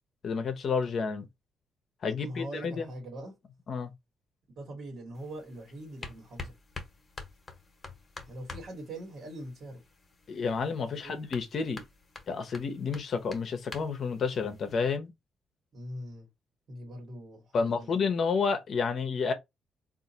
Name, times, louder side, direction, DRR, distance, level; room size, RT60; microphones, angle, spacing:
voice 1, 0.2-1.3 2.0-2.9 3.7-3.9 10.3-11.8 12.3-15.1 17.5-19.3, left 5 dB, 55° left, 0.7 m, -30 dB
voice 2, 2.2-3.4 4.5-6.5 8.2-9.8 10.9-11.2 15.7-16.3 16.7-18.0, right 1 dB, 60° right, 1.4 m, -42 dB
sound 1, 5.1-15.0, left 3 dB, 30° left, 1.1 m, -48 dB
3.7 x 2.5 x 2.7 m
cardioid pair, 90°, 0 cm